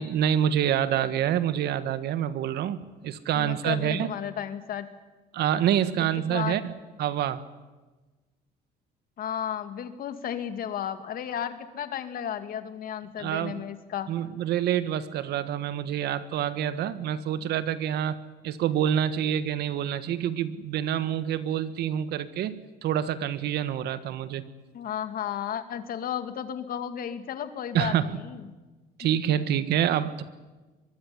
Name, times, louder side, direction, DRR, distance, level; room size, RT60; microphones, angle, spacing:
voice 1, 0.0-4.1 5.3-7.4 13.2-13.6 14.1-18.2 18.4-24.4 27.7-28.1 29.0-30.2, right 10 dB, 75° right, 13 dB, 1.6 m, -27 dB
voice 2, 3.3-4.9 6.3-6.7 9.2-14.1 24.7-28.4 29.0-29.1, left 9 dB, 60° left, 9 dB, 2.3 m, -33 dB
23.5 x 21.0 x 9.8 m, 1.2 s
cardioid pair, 110°, 17 cm